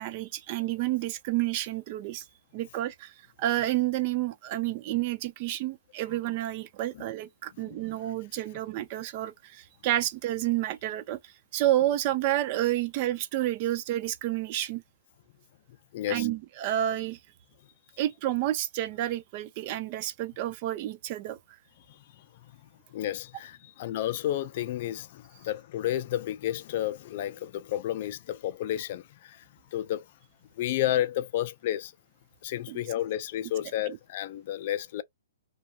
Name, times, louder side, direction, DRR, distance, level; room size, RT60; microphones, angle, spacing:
voice 1, 0.0-2.2 2.5-14.8 16.1-17.2 18.0-21.4 32.7-32.8 33.9-34.0, right 14 dB, 35° right, 0.4 m, -30 dB
voice 2, 15.9-16.3 21.9-22.5 22.9-29.4 29.7-30.0 30.6-31.9 32.4-35.0, left 12 dB, 40° left, 0.4 m, -31 dB
2.6 x 2.3 x 2.7 m
hypercardioid pair, 155°, 0 cm